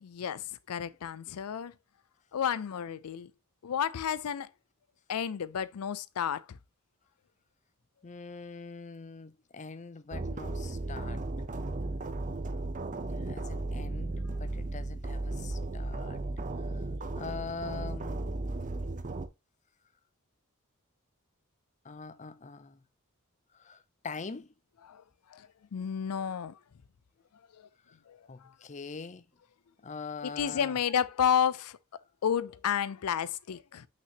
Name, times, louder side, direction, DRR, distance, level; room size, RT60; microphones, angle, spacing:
voice 1, 0.0-1.7 2.3-3.3 3.6-4.5 5.1-6.6 13.3-13.5 24.8-25.0 25.3-26.6 27.5-27.6 28.1-28.5 30.2-31.8 32.2-33.9, left 8 dB, 80° left, 0.4 m, -31 dB
voice 2, 8.0-11.2 13.2-16.2 16.7-16.8 17.1-18.4 21.8-22.8 23.5-24.5 27.9-28.0 28.3-29.2 29.8-30.7, left 4 dB, 35° left, 0.6 m, -43 dB
sound 1, 10.1-19.3, right 2 dB, 35° right, 0.7 m, -35 dB
6.0 x 5.8 x 2.9 m
head